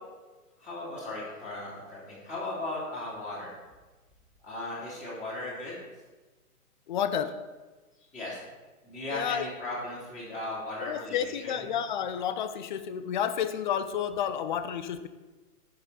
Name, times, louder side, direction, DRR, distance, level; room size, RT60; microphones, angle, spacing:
voice 1, 0.6-3.5 4.4-5.8 8.1-8.4 8.8-11.6, left 2 dB, 15° left, -7 dB, 3.2 m, -37 dB
voice 2, 6.9-7.4 9.1-9.5 10.8-15.1, left 9 dB, 35° left, 11 dB, 0.5 m, -30 dB
10.5 x 6.8 x 4.2 m, 1.2 s
hypercardioid pair, 135°, 46 cm